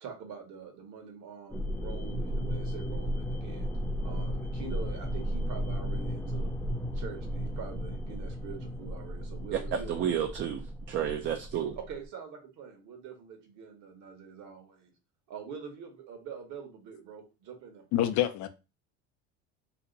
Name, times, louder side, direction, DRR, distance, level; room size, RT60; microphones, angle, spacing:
voice 1, 0.0-3.7 4.0-6.5 6.9-10.1 11.8-14.9 15.3-17.8, right 6 dB, 60° right, 1.2 m, -44 dB
sound 1, 1.5-12.0, equal, 5° left, 0.6 m, -34 dB
voice 2, 9.5-11.8, right 9 dB, 40° right, 0.4 m, -31 dB
voice 3, 17.9-18.5, left 12 dB, 60° left, 0.5 m, -26 dB
2.8 x 2.2 x 3.8 m
supercardioid pair, 110°, 33 cm